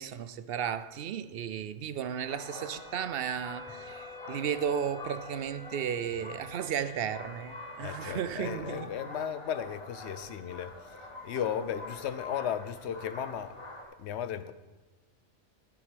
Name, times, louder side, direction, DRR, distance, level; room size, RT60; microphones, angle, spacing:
voice 1, 0.0-8.9, right 8 dB, 60° right, 0.7 m, -34 dB
Wind instrument woodwind instrument, 2.1-7.8, left 3 dB, 5° left, 3.1 m, -49 dB
sound 1, 2.2-13.8, left 2 dB, 30° left, 3.6 m, -46 dB
voice 2, 7.8-13.6 14.0-14.5, left 9 dB, 70° left, 0.9 m, -35 dB
13.0 x 7.2 x 5.1 m
omnidirectional pair, 1.2 m